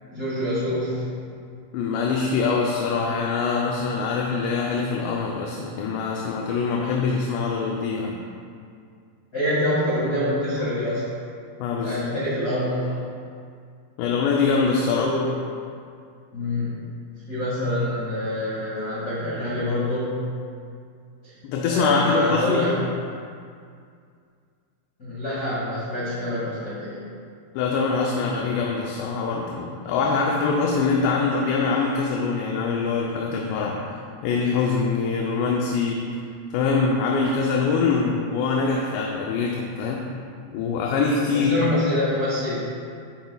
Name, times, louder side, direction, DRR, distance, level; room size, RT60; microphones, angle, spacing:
voice 1, 0.1-1.1 9.3-11.1 11.8-12.8 14.9-15.3 16.3-16.8 17.3-20.2 21.2-21.3 21.6-22.8 25.0-27.1 41.3-42.6, left 1 dB, 65° left, -9 dB, 0.9 m, -26 dB
voice 2, 1.7-8.2 11.6-12.1 14.0-15.2 21.4-22.7 27.5-33.9 34.2-36.1 36.5-40.1 40.5-41.5, left 4 dB, 80° left, -1 dB, 2.7 m, -24 dB
13.5 x 9.0 x 2.3 m, 2.3 s
omnidirectional pair, 5.3 m